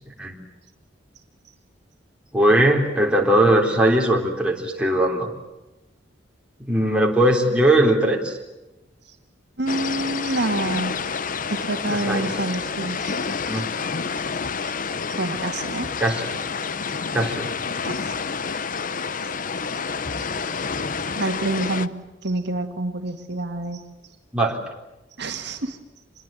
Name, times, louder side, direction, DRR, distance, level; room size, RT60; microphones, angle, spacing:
voice 1, 2.3-5.3 6.6-8.4 12.1-12.3 13.5-13.7 16.0-16.2 17.1-17.5 24.3-24.6, right 1 dB, 5° right, 0 dB, 3.8 m, -19 dB
voice 2, 9.6-11.0 11.5-13.3 15.1-15.9 17.8-18.1 21.1-23.8 25.2-25.8, right 2 dB, 65° right, 6 dB, 1.8 m, -27 dB
sound 1, 9.7-21.9, left 5 dB, 45° left, 0.8 m, -29 dB
27.0 x 21.5 x 9.2 m, 1.0 s
head